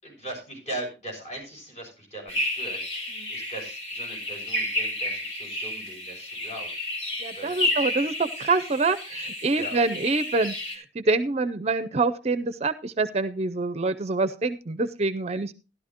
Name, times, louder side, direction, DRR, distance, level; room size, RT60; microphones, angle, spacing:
voice 1, 0.0-6.7 7.3-7.7 9.5-9.8, right 1 dB, 40° left, 1 dB, 5.9 m, -39 dB
sound 1, 2.3-10.8, left 1 dB, 90° left, 3.6 m, -31 dB
voice 2, 7.2-15.5, right 3 dB, 35° right, 12 dB, 0.5 m, -26 dB
13.5 x 12.0 x 2.9 m, 0.29 s
head